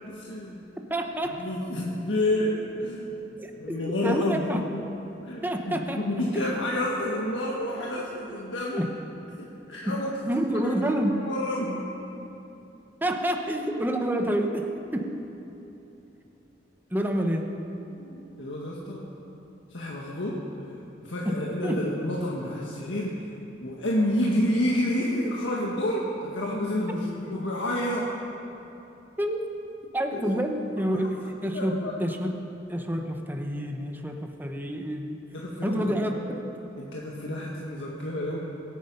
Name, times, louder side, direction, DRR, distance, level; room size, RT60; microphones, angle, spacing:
voice 1, 0.1-0.6 1.4-3.2 3.6-4.6 5.2-8.8 9.4-10.1 10.5-11.9 17.9-19.1 19.7-20.7 21.0-23.3 23.6-28.1 30.1-30.3 31.0-32.0 35.3-35.9 36.8-38.4, left 1 dB, 90° left, -4 dB, 1.6 m, -29 dB
voice 2, 0.9-1.4 3.4-4.7 5.4-6.0 6.3-6.4 8.8-8.9 9.9-11.3 13.0-15.2 16.9-17.6 21.3-21.9 29.2-29.4 29.9-35.2 35.6-36.4, equal, 10° right, 3 dB, 0.9 m, -28 dB
23.0 x 9.5 x 5.5 m, 3.0 s
head